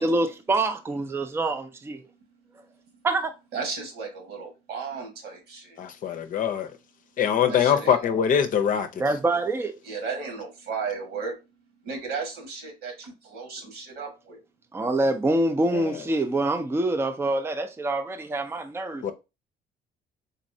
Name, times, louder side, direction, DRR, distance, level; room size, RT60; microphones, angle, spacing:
voice 1, 0.0-2.0 3.0-3.3 9.0-9.7 14.7-19.1, right 2 dB, 15° right, 0.5 m, -25 dB
voice 2, 2.5-3.0 3.5-5.8 7.5-8.0 9.8-11.4 11.8-14.4, right 5 dB, 80° right, 1.7 m, -35 dB
voice 3, 5.8-6.7 7.2-8.9 15.7-16.0 19.0-19.1, left 8 dB, 50° left, 0.6 m, -23 dB
4.1 x 3.1 x 2.7 m
cardioid pair, 110°, 17 cm